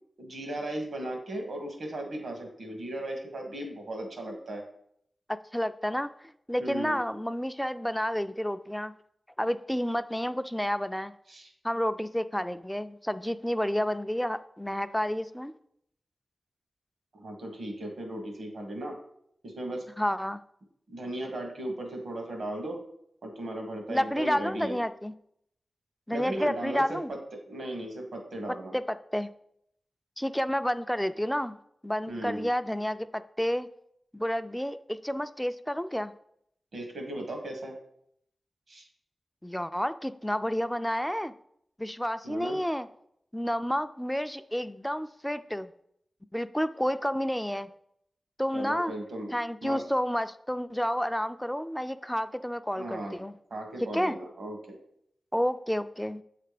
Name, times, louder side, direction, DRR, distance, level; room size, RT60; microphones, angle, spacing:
voice 1, 0.2-4.6 6.6-7.0 11.3-11.5 17.1-19.0 19.4-19.8 20.9-22.8 23.2-24.8 26.1-27.2 27.5-28.8 32.1-32.5 36.7-37.8 38.7-38.9 42.2-42.6 48.5-49.3 49.6-49.8 52.7-53.1 53.5-54.8, right 1 dB, 80° right, 3 dB, 1.5 m, -36 dB
voice 2, 5.3-6.1 6.5-8.9 9.4-11.1 11.6-15.5 20.0-20.4 23.9-25.1 26.1-27.1 28.7-29.3 30.2-31.6 31.8-33.7 34.1-36.1 39.4-41.3 41.8-42.9 43.3-45.7 46.3-47.7 48.4-48.9 49.3-53.3 53.8-54.1 55.3-56.2, equal, 5° left, 11 dB, 0.3 m, -30 dB
7.7 x 3.3 x 5.0 m, 0.72 s
wide cardioid pair, 75°, 0 cm